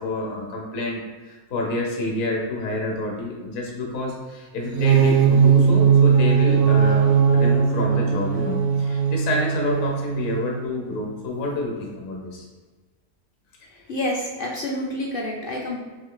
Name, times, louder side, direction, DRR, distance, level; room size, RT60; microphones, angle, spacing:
voice 1, 0.0-12.5, left 2 dB, 70° left, -1 dB, 1.2 m, -28 dB
sound 1, 4.6-10.6, right 6 dB, 70° right, 0.6 m, -18 dB
voice 2, 13.9-15.8, left 1 dB, 55° left, -2 dB, 0.6 m, -28 dB
3.5 x 3.2 x 3.7 m, 1.3 s
omnidirectional pair, 1.5 m